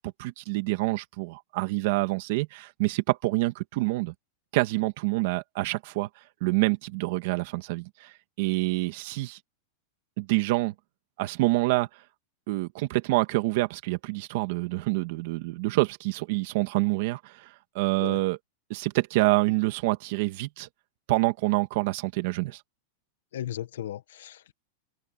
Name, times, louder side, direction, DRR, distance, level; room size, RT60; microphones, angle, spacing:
voice 1, 0.0-4.1 4.5-6.1 6.4-9.4 10.2-10.7 11.2-11.9 12.5-17.5 17.7-18.4 18.7-20.7 21.1-22.6, right 21 dB, 50° right, 2.1 m, -27 dB
voice 2, 23.3-24.5, left 11 dB, 90° left, 1.7 m, -36 dB
supercardioid pair, 170°, 0 cm